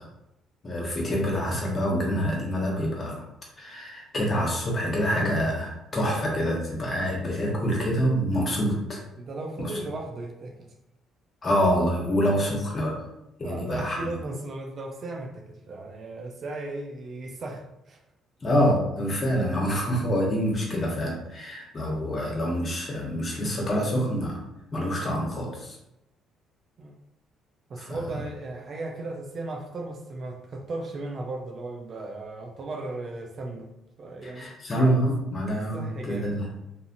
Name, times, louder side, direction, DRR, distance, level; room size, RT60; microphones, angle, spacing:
voice 1, 0.6-3.2 3.6-9.0 9.6-9.7 11.4-12.9 13.4-14.1 18.4-24.4 24.7-25.8 27.8-28.0 34.2-36.5, equal, 40° left, -2 dB, 1.1 m, -26 dB
voice 2, 9.2-10.7 13.4-18.0 26.8-26.9 27.7-33.7 34.0-34.5 35.5-36.3, right 2 dB, 50° right, 2 dB, 0.5 m, -36 dB
2.7 x 2.5 x 2.6 m, 0.88 s
supercardioid pair, 60°, 0 cm